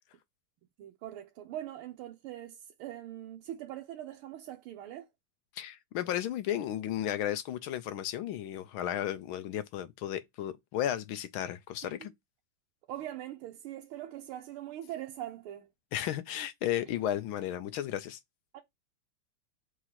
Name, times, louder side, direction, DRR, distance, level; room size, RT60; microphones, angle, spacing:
voice 1, 0.8-5.1 11.8-11.9 12.9-15.7 18.5-18.6, right 12 dB, 85° right, 1.6 m, -42 dB
voice 2, 5.6-12.1 15.9-18.2, left 11 dB, 75° left, 1.5 m, -34 dB
4.8 x 3.7 x 5.7 m
omnidirectional pair, 2.3 m